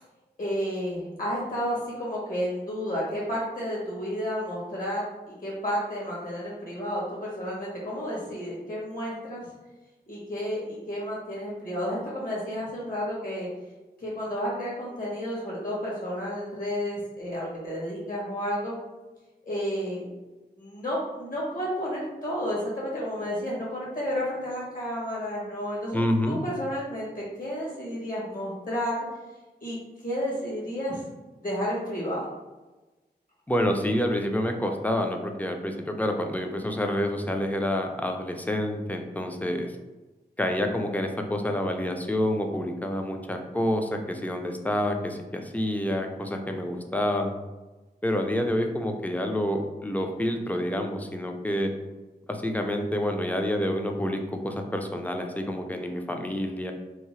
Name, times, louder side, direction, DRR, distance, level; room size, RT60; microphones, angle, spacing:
voice 1, 0.4-9.4 10.1-13.5 14.0-18.7 19.4-20.0 20.6-26.0 26.3-29.0 29.6-29.8 30.0-31.0 31.4-32.3, equal, 55° left, -5 dB, 1.3 m, -31 dB
voice 2, 25.9-26.4 33.5-39.7 40.4-47.3 48.0-51.7 52.3-56.7, left 1 dB, 10° left, 4 dB, 0.4 m, -28 dB
2.8 x 2.0 x 3.0 m, 1.1 s
cardioid pair, 55°, 17 cm